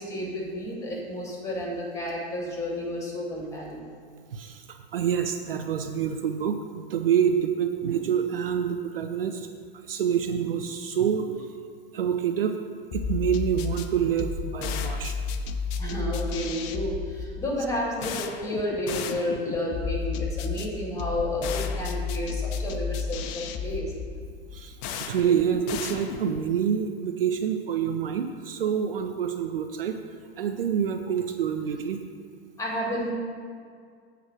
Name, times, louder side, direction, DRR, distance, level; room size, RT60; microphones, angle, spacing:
voice 1, 0.0-3.9 15.8-23.9 32.6-33.1, left 1 dB, 10° left, -3 dB, 2.1 m, -31 dB
voice 2, 4.3-9.5 9.9-11.5 11.9-12.6 12.9-15.2 24.5-30.0 30.4-32.0, right 8 dB, 65° right, 6 dB, 0.6 m, -27 dB
sound 1, 12.9-26.5, left 5 dB, 35° left, 0.5 m, -32 dB
7.9 x 4.9 x 6.1 m, 2.1 s
figure-of-eight pair, 95°, 31 cm